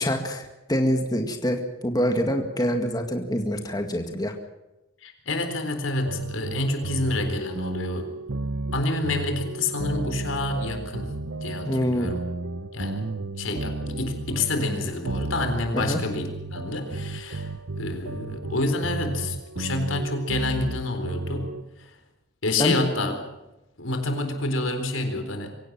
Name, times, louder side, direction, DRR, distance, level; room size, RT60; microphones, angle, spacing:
voice 1, 0.0-4.3 11.6-12.1 15.7-16.0 22.6-22.7, equal, 20° left, 4 dB, 2.0 m, -25 dB
voice 2, 5.0-8.1 8.7-11.1 11.4-12.2 12.7-13.1 13.4-17.5 17.8-21.5 22.4-23.2 23.8-25.5, left 2 dB, 90° left, 6 dB, 4.1 m, -28 dB
sound 1, 6.0-21.6, right 2 dB, 90° right, 1.0 m, -33 dB
24.5 x 17.0 x 7.5 m, 0.97 s
head